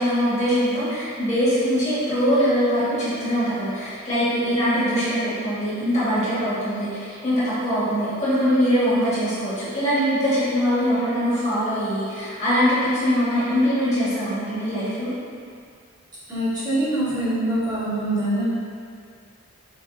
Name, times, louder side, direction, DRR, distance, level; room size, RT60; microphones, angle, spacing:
voice 1, 0.0-15.1, equal, 30° left, -11 dB, 1.5 m, -22 dB
voice 2, 16.3-18.5, right 1 dB, 20° right, -11 dB, 1.3 m, -24 dB
4.8 x 3.5 x 2.6 m, 2.2 s
head